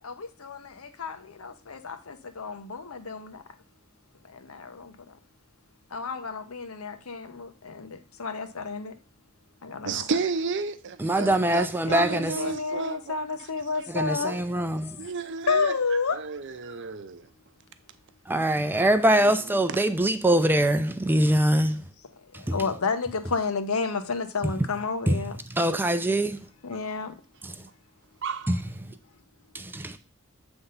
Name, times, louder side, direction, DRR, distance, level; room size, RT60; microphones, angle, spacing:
voice 1, 0.0-3.4 4.2-5.0 5.9-8.9 9.6-10.1 11.9-14.4 15.5-16.2 22.3-25.4 26.6-27.2, left 4 dB, 80° left, 0.8 m, -31 dB
voice 2, 9.8-13.0 13.4-13.5 14.2-14.7 15.0-15.7 16.1-17.3 19.0-19.6 28.2-28.5, right 4 dB, 60° right, 0.6 m, -32 dB
voice 3, 11.0-12.3 13.9-15.0 18.3-21.8 22.3-22.6 25.1-25.2 25.5-26.4 27.4-27.5 28.5-28.6 29.6-30.0, right 1 dB, 10° right, 0.5 m, -23 dB
7.8 x 3.5 x 5.5 m
head